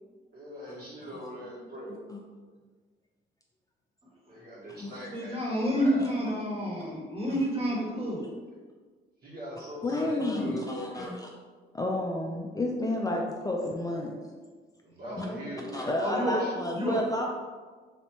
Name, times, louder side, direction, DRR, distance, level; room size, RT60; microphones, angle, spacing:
voice 1, 0.3-2.0 4.3-6.1 9.2-11.1 14.8-16.6, equal, 50° right, -4 dB, 1.4 m, -42 dB
voice 2, 5.1-8.3 15.0-15.7 16.0-16.4 16.7-17.0, equal, 30° right, -4 dB, 1.4 m, -30 dB
voice 3, 9.8-11.3 11.7-14.3 15.2-15.3 15.7-17.2, left 1 dB, 20° left, -1 dB, 0.4 m, -31 dB
3.3 x 2.7 x 4.3 m, 1.4 s
cardioid pair, 90°, 20 cm